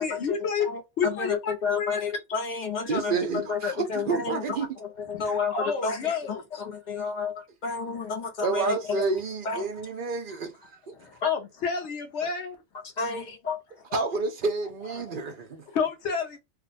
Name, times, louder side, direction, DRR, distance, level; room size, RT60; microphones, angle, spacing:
voice 1, 0.0-0.7 1.0-2.0 5.1-6.4 10.9-12.6 14.8-15.1 15.7-16.4, left 6 dB, 85° left, 1.1 m, -29 dB
voice 2, 0.7-4.6 5.1-5.5 5.8-9.0 9.4-9.6 13.0-13.6, left 5 dB, 50° left, 0.7 m, -31 dB
voice 3, 2.9-4.8 8.4-10.9 13.9-15.6, right 4 dB, 55° right, 0.7 m, -29 dB
2.6 x 2.2 x 4.0 m
omnidirectional pair, 1.1 m